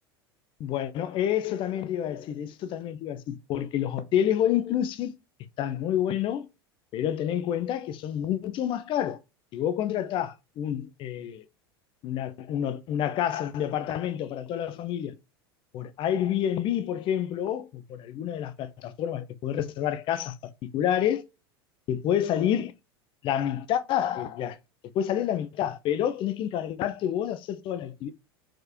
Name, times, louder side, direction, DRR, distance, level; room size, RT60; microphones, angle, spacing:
voice 1, 0.6-5.1 5.6-6.5 6.9-9.2 9.5-11.4 12.0-15.1 15.7-20.4 20.7-21.2 21.9-22.7 23.2-24.6 24.9-28.1, left 10 dB, 40° left, 0.7 m, -28 dB
4.7 x 4.5 x 4.9 m
figure-of-eight pair, 80°, 13 cm